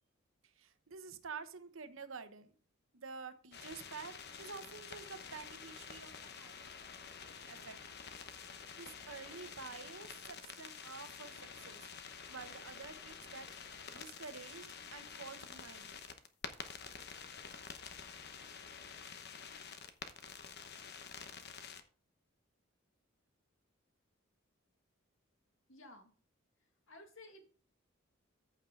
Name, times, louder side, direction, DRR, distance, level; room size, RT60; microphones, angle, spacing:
voice 1, 0.6-2.5 2.9-6.7 7.4-7.8 8.8-11.9 12.3-13.5 13.9-15.9, right 5 dB, 75° right, 10 dB, 1.0 m, -49 dB
sound 1, 3.5-21.8, left 6 dB, 55° left, 1.0 m, -49 dB
voice 2, 25.7-26.1 26.6-27.4, left 2 dB, 70° left, 4 dB, 2.2 m, -56 dB
14.0 x 5.5 x 3.8 m, 0.39 s
head